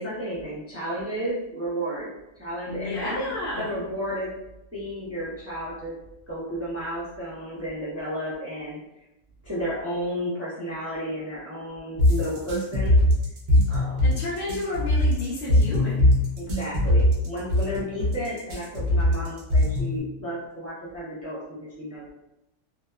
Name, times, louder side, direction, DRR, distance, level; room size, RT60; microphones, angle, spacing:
voice 1, 0.0-4.3 4.7-6.0 6.3-8.8 9.4-13.0 13.7-14.2 16.4-21.4 21.8-22.1, equal, 20° right, -8 dB, 0.4 m, -32 dB
voice 2, 2.7-3.7 14.0-16.1, left 2 dB, 55° left, -6 dB, 0.6 m, -31 dB
sound 1, 12.0-20.0, left 1 dB, 65° right, 0.9 m, -21 dB
2.8 x 2.1 x 2.2 m, 0.89 s
omnidirectional pair, 1.3 m